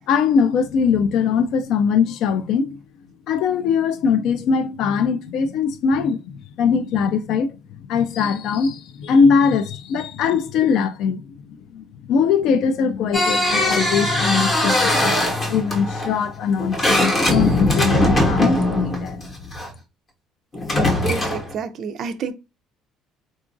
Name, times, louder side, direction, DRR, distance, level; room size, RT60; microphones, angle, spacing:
voice 1, 0.1-2.8 3.3-7.5 7.9-19.2, left 6 dB, 55° left, 0.3 m, -21 dB
sound 1, 13.1-19.7 20.5-21.5, left 1 dB, 20° left, 0.7 m, -21 dB
voice 2, 21.0-22.3, right 6 dB, 40° right, 0.3 m, -29 dB
3.7 x 2.3 x 2.5 m
cardioid pair, 175°, 0 cm